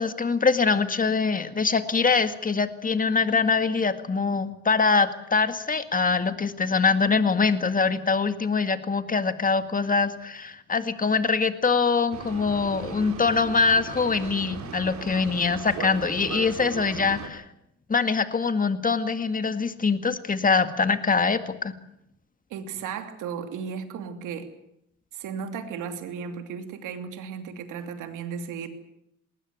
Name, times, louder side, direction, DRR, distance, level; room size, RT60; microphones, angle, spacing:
voice 1, 0.0-17.4 17.9-21.7, left 4 dB, 25° left, 9 dB, 2.0 m, -23 dB
Boat Water vehicle, 12.1-17.3, right 6 dB, 65° right, 3.7 m, -38 dB
voice 2, 22.5-24.5 25.1-28.7, right 6 dB, 90° right, 7 dB, 2.9 m, -35 dB
20.5 x 19.0 x 9.2 m, 0.79 s
cardioid pair, 90°, 30 cm